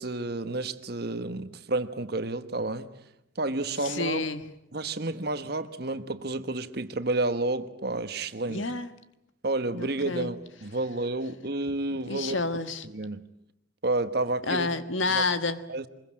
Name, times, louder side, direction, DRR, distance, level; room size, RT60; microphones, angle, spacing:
voice 1, 0.0-2.9 3.4-4.3 4.7-8.7 9.4-12.4 12.8-13.2 13.8-14.7 15.1-15.2 15.7-15.9, right 2 dB, 55° right, 11 dB, 1.3 m, -30 dB
voice 2, 3.8-4.4 8.5-8.9 9.7-10.3 12.1-12.9 14.5-15.6, left 3 dB, 80° left, 10 dB, 1.5 m, -29 dB
24.5 x 21.5 x 8.7 m, 0.81 s
head